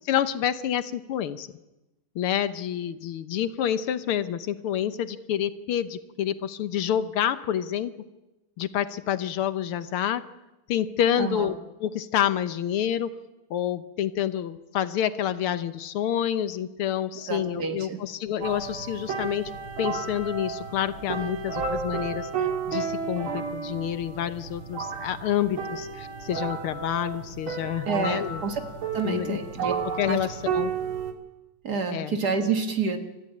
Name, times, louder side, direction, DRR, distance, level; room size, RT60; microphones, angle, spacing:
voice 1, 0.1-1.5 2.2-7.9 8.6-10.2 10.7-11.6 11.8-13.1 13.5-19.5 19.8-28.4 29.0-29.4 30.0-30.7 31.9-32.2, left 10 dB, 85° left, 12 dB, 1.9 m, -28 dB
voice 2, 11.2-11.5 17.3-18.0 27.9-28.6 28.9-30.2 31.6-33.0, right 5 dB, 50° right, 5 dB, 2.2 m, -28 dB
sound 1, 18.4-31.1, right 5 dB, 75° right, 3.1 m, -32 dB
28.5 x 14.0 x 8.6 m, 1.0 s
omnidirectional pair, 2.3 m